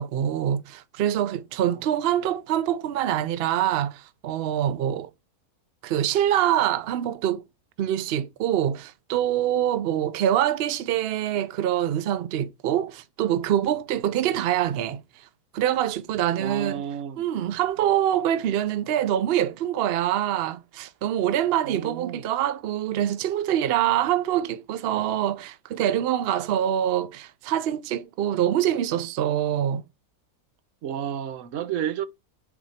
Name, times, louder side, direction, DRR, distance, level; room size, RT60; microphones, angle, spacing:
voice 1, 0.0-5.1 5.8-7.4 7.8-15.0 15.5-16.8 17.2-29.8, right 11 dB, 85° right, 0.5 m, -25 dB
voice 2, 16.4-17.2 21.6-22.3 30.8-32.1, right 9 dB, 65° right, 0.9 m, -31 dB
6.1 x 4.4 x 4.2 m
omnidirectional pair, 1.7 m